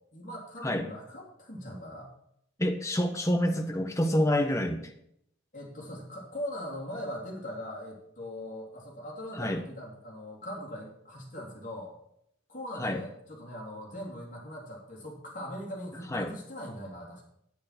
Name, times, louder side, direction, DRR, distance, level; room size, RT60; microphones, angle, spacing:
voice 1, 0.1-2.1 5.5-11.9 12.5-17.2, left 1 dB, 40° left, -2 dB, 3.2 m, -40 dB
voice 2, 2.6-4.8 9.4-9.6 12.8-13.0 16.1-16.3, left 1 dB, 15° left, 5 dB, 1.0 m, -27 dB
9.2 x 8.6 x 5.9 m, 0.73 s
head